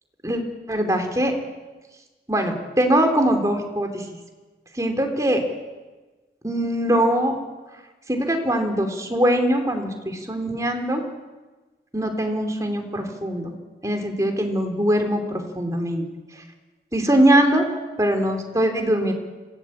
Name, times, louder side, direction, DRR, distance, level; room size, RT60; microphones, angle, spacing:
voice 1, 0.7-1.3 2.3-4.0 4.7-5.4 6.4-7.4 8.1-11.0 11.9-13.5 13.8-16.0 16.9-17.7 18.0-19.1, right 1 dB, 20° right, 4 dB, 3.0 m, -22 dB
25.5 x 16.5 x 8.6 m, 1.2 s
head